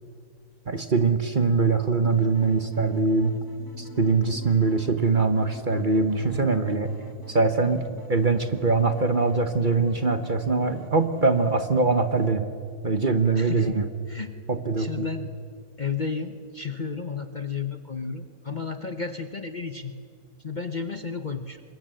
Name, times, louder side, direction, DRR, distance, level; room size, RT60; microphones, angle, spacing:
voice 1, 0.7-3.4 3.8-6.9 7.3-7.8 8.1-12.4 12.8-13.8 14.5-15.1, right 4 dB, 35° right, 8 dB, 1.2 m, -23 dB
sound 1, 2.1-12.3, left 1 dB, 15° left, 1.9 m, -46 dB
voice 2, 13.3-13.8 14.1-15.3 15.8-19.9 20.4-21.6, left 5 dB, 35° left, 8 dB, 0.9 m, -33 dB
25.5 x 22.0 x 7.7 m, 2.2 s
omnidirectional pair, 1.6 m